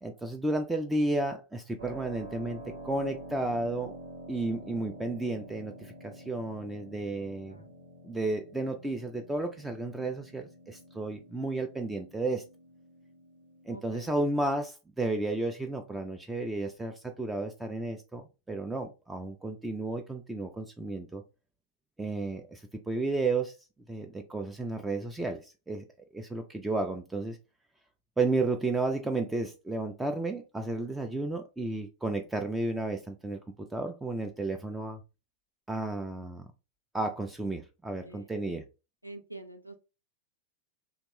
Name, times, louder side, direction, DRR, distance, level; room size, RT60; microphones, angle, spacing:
voice 1, 0.0-4.0 4.3-7.6 8.0-12.4 13.7-21.2 22.0-23.6 23.9-25.8 26.1-27.4 28.2-33.4 33.7-35.0 35.7-36.5 36.9-38.6, right 2 dB, 10° right, 0.3 m, -32 dB
Keyboard (musical), 1.8-14.3, right 1 dB, 75° right, 1.0 m, -48 dB
voice 2, 13.7-14.1 38.0-38.3 39.0-39.8, right 2 dB, 90° left, 0.4 m, -46 dB
2.8 x 2.2 x 2.8 m
figure-of-eight pair, 90°, 0 cm